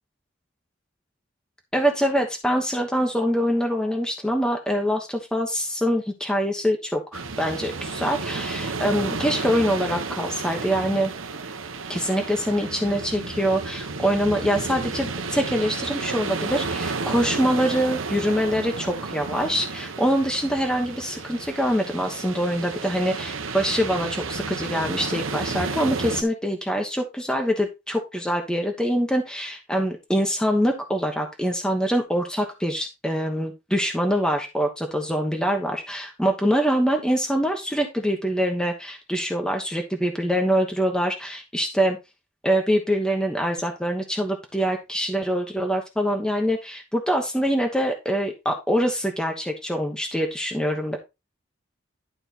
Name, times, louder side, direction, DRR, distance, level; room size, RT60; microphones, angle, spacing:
voice 1, 1.7-11.1 11.9-42.0 42.4-51.0, equal, 5° left, 2 dB, 1.1 m, -24 dB
sound 1, 7.1-26.2, right 4 dB, 85° right, 1.1 m, -32 dB
11.5 x 4.4 x 4.2 m, 0.25 s
head